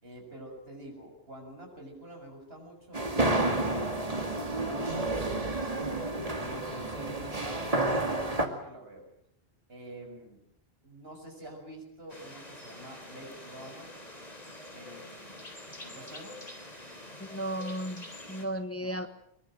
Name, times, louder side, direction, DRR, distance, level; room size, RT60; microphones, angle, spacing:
voice 1, 0.0-3.8 4.3-9.1 9.7-10.4 10.8-13.9 14.7-15.3 15.8-16.4 18.8-19.0, right 1 dB, 70° right, 7.0 m, -47 dB
sound 1, 2.9-8.5, right 2 dB, 35° right, 2.5 m, -30 dB
sound 2, 12.1-18.5, left 1 dB, 40° left, 4.1 m, -46 dB
voice 2, 17.3-19.1, equal, 15° left, 1.2 m, -34 dB
23.0 x 22.5 x 7.7 m
omnidirectional pair, 1.1 m